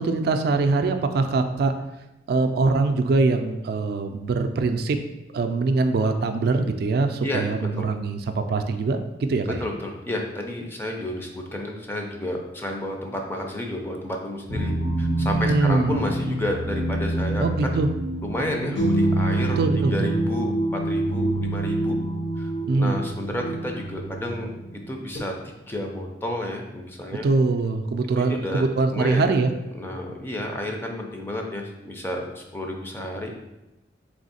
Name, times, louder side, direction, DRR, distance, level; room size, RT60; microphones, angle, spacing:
voice 1, 0.0-1.7 2.3-5.0 5.3-9.6 15.4-16.0 17.4-17.9 19.6-20.1 22.7-23.0 27.2-29.5, right 3 dB, 60° right, 7 dB, 0.3 m, -23 dB
voice 2, 9.5-14.7 15.0-17.7 18.2-19.6 19.9-22.0 22.4-22.5 22.8-27.2 28.2-28.6 28.9-29.2 29.7-33.3, left 1 dB, 10° left, 1 dB, 0.4 m, -31 dB
sound 1, 14.5-25.2, right 1 dB, 70° left, 1.2 m, -26 dB
3.5 x 3.1 x 4.0 m, 0.98 s
head